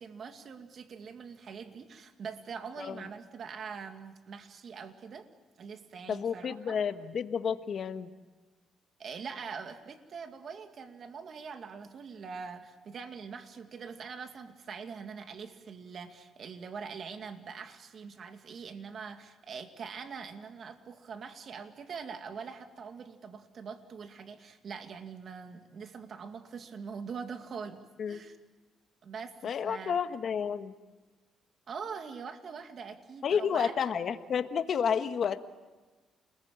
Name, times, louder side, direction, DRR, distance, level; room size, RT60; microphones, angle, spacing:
voice 1, 0.0-5.3 5.6-6.8 9.0-27.8 28.1-28.4 29.0-30.0 31.7-33.9, right 6 dB, 55° right, 7 dB, 2.2 m, -43 dB
voice 2, 6.1-8.1 28.0-28.2 29.4-30.7 33.2-35.4, left 7 dB, 60° left, 9 dB, 1.4 m, -31 dB
29.0 x 21.0 x 8.9 m, 1.3 s
cardioid pair, 90°, 0 cm